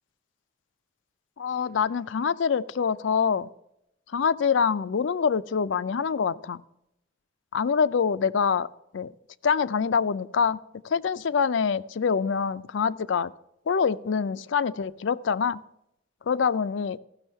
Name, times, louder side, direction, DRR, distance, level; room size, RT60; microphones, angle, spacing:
voice 1, 1.4-3.5 4.1-6.6 7.5-8.7 8.9-9.1 9.4-10.6 10.8-13.3 13.7-15.6 16.3-17.0, left 6 dB, 70° left, 16 dB, 0.4 m, -25 dB
14.5 x 6.3 x 5.5 m, 0.80 s
head